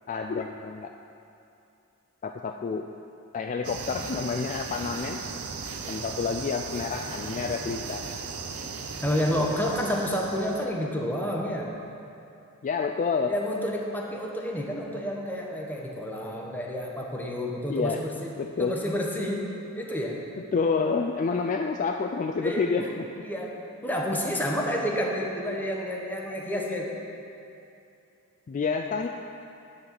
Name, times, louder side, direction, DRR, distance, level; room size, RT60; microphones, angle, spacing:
voice 1, 0.1-0.9 2.2-2.9 3.3-5.2 5.9-8.0 9.4-9.5 12.6-13.4 17.7-18.0 18.4-18.8 20.5-23.1 28.5-29.1, left 5 dB, 35° left, 4 dB, 0.3 m, -28 dB
sound 1, 3.6-10.7, right 4 dB, 80° right, 0.7 m, -37 dB
voice 2, 9.0-11.7 13.3-18.3 18.6-19.5 19.8-20.2 22.4-22.9 23.2-23.5 23.8-27.0, equal, 10° left, -1 dB, 0.9 m, -29 dB
9.7 x 4.0 x 7.4 m, 2.7 s
head